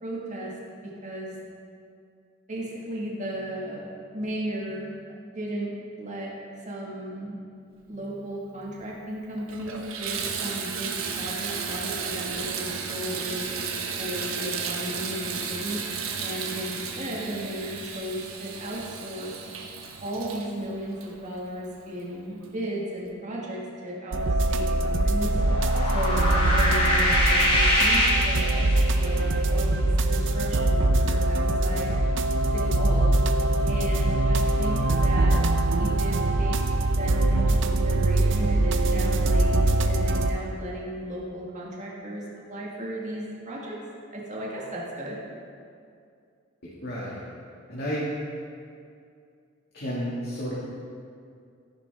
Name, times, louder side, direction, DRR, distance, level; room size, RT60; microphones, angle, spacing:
voice 1, 0.0-0.6 0.8-1.4 2.5-4.9 5.3-6.3 6.6-7.4 7.9-13.5 14.0-15.9 16.2-19.4 20.0-25.4 25.8-31.9 32.5-33.2 33.7-35.4 35.8-36.6 36.9-43.8 44.1-45.2, right 1 dB, 35° right, -4 dB, 1.7 m, -35 dB
Water tap faucet / Bathtub (filling or washing), 8.8-8.9 9.4-21.8 22.4-22.5 23.0-23.1, right 6 dB, 90° right, 1.1 m, -34 dB
sound 1, 24.1-40.3, right 2 dB, 65° right, 0.7 m, -23 dB
white noise-fx, 25.4-29.1, left 1 dB, 30° left, 2.9 m, -24 dB
voice 2, 46.8-47.2 47.7-48.0 49.7-50.5, equal, 55° left, -7 dB, 2.0 m, -31 dB
14.0 x 10.5 x 3.5 m, 2.4 s
head